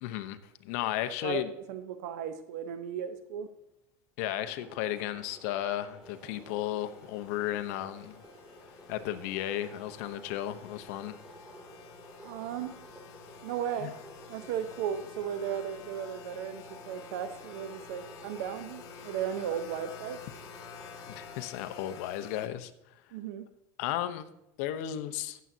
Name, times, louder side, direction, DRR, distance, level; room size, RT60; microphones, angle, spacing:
voice 1, 0.0-1.5 4.2-8.2 8.9-11.2 13.8-13.9 21.1-22.7 23.8-24.3 24.6-25.4, left 12 dB, 70° left, 11 dB, 0.8 m, -34 dB
voice 2, 1.7-3.5 12.2-12.7 13.4-14.0 14.3-20.2 23.1-23.5, right 9 dB, 80° right, 10 dB, 0.9 m, -35 dB
sound 1, 4.4-21.5, right 1 dB, 10° right, 2.2 m, -52 dB
sound 2, 6.0-22.5, left 8 dB, 50° left, 1.3 m, -50 dB
15.0 x 7.5 x 2.8 m, 0.87 s
supercardioid pair, 140°, 8 cm